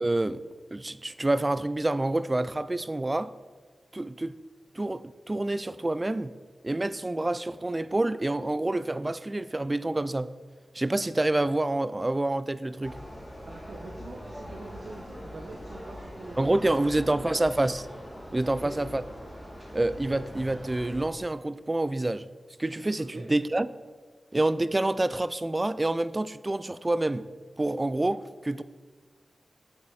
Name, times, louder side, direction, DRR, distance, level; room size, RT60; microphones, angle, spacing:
voice 1, 0.0-0.4 0.7-3.3 3.9-4.3 4.8-6.3 6.6-10.3 10.7-13.0 16.4-17.9 18.3-19.0 19.7-22.3 22.6-23.7 24.3-27.3 27.6-28.6, right 2 dB, 25° right, 0.3 m, -27 dB
sound 1, 12.8-21.0, equal, 5° left, 2.5 m, -42 dB
voice 2, 13.5-17.4 18.4-18.8 23.0-23.3, right 2 dB, 70° right, 1.2 m, -44 dB
8.7 x 8.7 x 4.2 m
cardioid pair, 60°, 0 cm